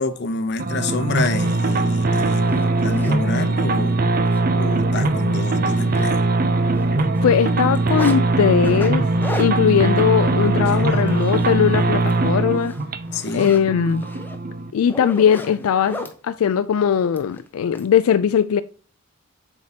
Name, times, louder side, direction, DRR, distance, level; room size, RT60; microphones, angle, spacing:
voice 1, 0.0-4.0 4.5-6.2 10.7-11.0 13.1-13.5, left 3 dB, 50° left, 0.7 m, -28 dB
sound 1, 0.6-14.7, right 2 dB, 40° right, 0.5 m, -21 dB
Zipper (clothing), 1.9-3.2 3.8-3.9 4.3-4.4 4.7-4.9 5.2-6.5 6.8-8.2 8.6-11.6 11.9-12.2 12.5-16.2 17.1-17.9, left 1 dB, 10° left, 0.6 m, -36 dB
voice 2, 7.2-9.1 9.4-12.7 13.3-14.1 14.7-18.6, left 8 dB, 85° left, 0.3 m, -19 dB
7.2 x 4.6 x 2.8 m
head